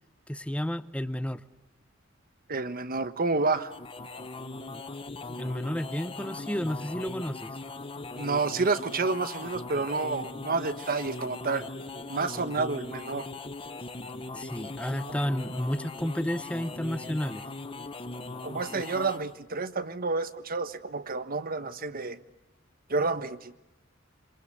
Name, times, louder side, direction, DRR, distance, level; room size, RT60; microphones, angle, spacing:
voice 1, 0.3-1.4 5.4-7.5 14.3-17.4, equal, 5° left, 13 dB, 0.9 m, -31 dB
voice 2, 2.5-3.7 8.2-11.6 12.1-13.3 18.4-22.2 22.9-23.5, right 3 dB, 45° right, 12 dB, 1.3 m, -29 dB
sound 1, 3.5-19.4, left 3 dB, 25° left, 1.1 m, -40 dB
26.5 x 26.5 x 7.7 m, 0.95 s
head